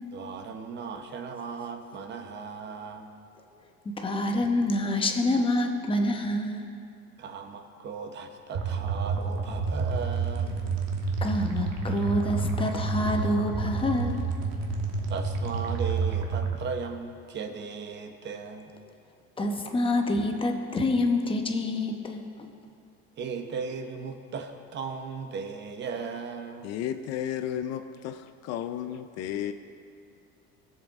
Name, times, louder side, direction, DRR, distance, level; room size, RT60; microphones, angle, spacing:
voice 1, 0.1-3.1 7.2-10.6 15.1-18.8 23.2-26.7, right 5 dB, 35° right, 6 dB, 0.9 m, -37 dB
voice 2, 3.8-6.6 11.2-14.2 19.4-22.5, left 1 dB, 15° left, 3 dB, 0.9 m, -27 dB
sound 1, 8.5-16.5, right 4 dB, 55° right, 1.3 m, -29 dB
voice 3, 26.6-29.5, left 10 dB, 55° left, 9 dB, 0.6 m, -33 dB
20.0 x 7.7 x 3.6 m, 2.4 s
cardioid pair, 150°, 32 cm